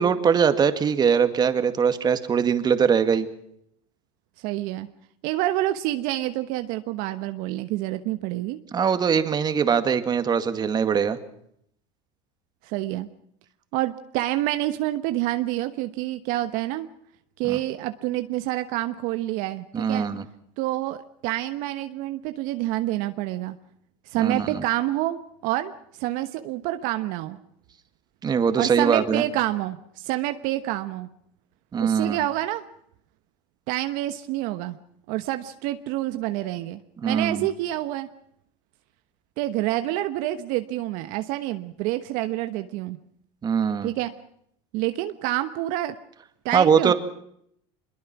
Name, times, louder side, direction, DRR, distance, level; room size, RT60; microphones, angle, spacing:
voice 1, 0.0-3.3 8.7-11.2 17.5-17.6 19.7-20.2 24.2-24.6 28.2-29.2 31.7-32.2 37.0-37.5 43.4-43.9 46.5-46.9, right 7 dB, 25° right, 9 dB, 2.1 m, -22 dB
voice 2, 4.4-4.9 5.2-8.6 12.6-13.1 13.7-16.9 17.4-20.1 20.6-23.6 24.1-25.7 26.0-27.4 28.6-31.1 31.8-32.6 33.7-34.8 35.1-38.1 39.4-43.0 43.8-44.1 44.7-45.9 46.4-46.9, right 15 dB, 60° right, 9 dB, 1.2 m, -28 dB
24.5 x 22.0 x 6.0 m, 0.73 s
supercardioid pair, 120°, 15 cm